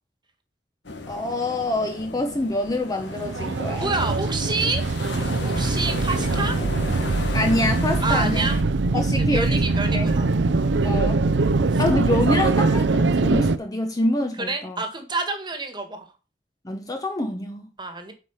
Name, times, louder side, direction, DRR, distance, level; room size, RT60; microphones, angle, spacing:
sound 1, 0.8-8.6, left 3 dB, 80° left, 1.7 m, -35 dB
voice 1, 1.1-3.9 7.3-8.5 8.9-9.6 9.9-10.1 10.8-11.2 11.8-14.8 16.6-17.7, left 1 dB, 20° left, 0.9 m, -26 dB
sound 2, 3.0-13.6, right 3 dB, 85° right, 0.6 m, -22 dB
voice 2, 3.8-4.9 5.4-6.6 8.0-8.6 8.9-10.3 11.7-11.8 14.4-16.1 17.8-18.1, right 3 dB, 25° right, 1.7 m, -28 dB
8.5 x 5.0 x 5.7 m
head